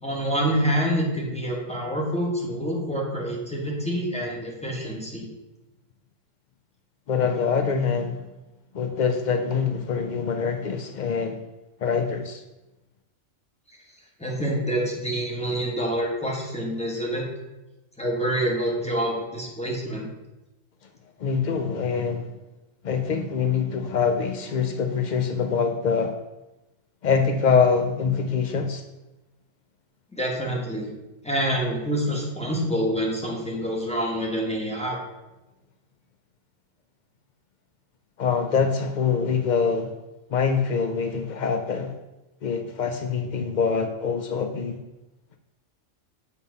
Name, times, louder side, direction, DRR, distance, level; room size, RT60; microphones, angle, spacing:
voice 1, 0.0-5.3 14.2-17.3 18.0-20.1 30.1-30.9 31.2-35.0, equal, 5° left, -3 dB, 1.5 m, -27 dB
voice 2, 7.1-8.2 8.7-11.4 11.8-12.4 21.2-22.3 22.8-26.2 27.0-28.8 38.2-39.9 40.3-42.0 42.4-44.8, left 6 dB, 85° left, 6 dB, 0.4 m, -24 dB
7.3 x 4.1 x 5.3 m, 1.0 s
omnidirectional pair, 1.4 m